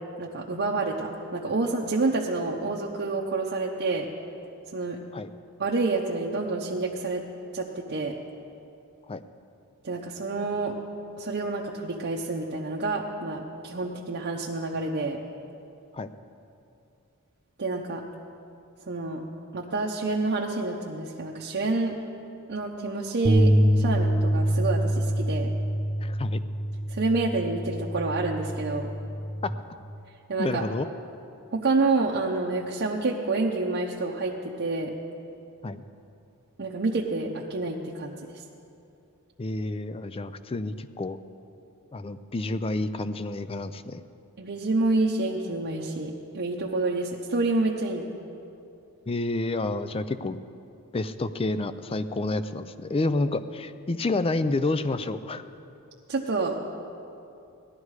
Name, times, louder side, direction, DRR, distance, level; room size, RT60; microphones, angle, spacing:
voice 1, 0.2-4.1 4.7-5.0 5.6-7.2 7.5-8.1 9.8-10.7 11.2-15.2 17.6-18.0 18.9-19.2 19.5-21.9 22.5-25.5 26.9-28.9 30.3-30.6 31.5-34.9 36.6-38.4 44.4-48.1 56.1-56.6, right 3 dB, 50° right, -2 dB, 0.8 m, -28 dB
sound 1, 23.2-29.5, equal, 5° right, 1.2 m, -25 dB
voice 2, 26.0-26.4 29.4-29.5 30.4-30.9 35.6-35.8 39.4-41.2 41.9-44.0 49.1-50.4 50.9-55.4, left 2 dB, 25° left, 12 dB, 0.4 m, -29 dB
17.0 x 12.0 x 4.8 m, 2.7 s
head